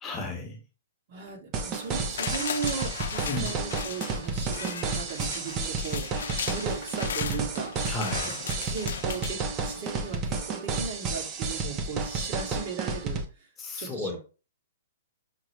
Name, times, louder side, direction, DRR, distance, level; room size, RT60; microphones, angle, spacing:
voice 1, 0.0-0.6 3.3-3.5 7.9-8.4 13.6-14.2, left 2 dB, 15° left, 1 dB, 0.9 m, -33 dB
voice 2, 1.1-7.8 8.7-14.2, right 5 dB, 40° right, 0 dB, 1.2 m, -37 dB
sound 1, 1.5-13.2, right 4 dB, 25° right, 0.5 m, -31 dB
sound 2, 1.8-10.0 10.4-10.5, left 7 dB, 70° left, 0.5 m, -37 dB
5.8 x 2.0 x 3.1 m, 0.34 s
hypercardioid pair, 160°, 0 cm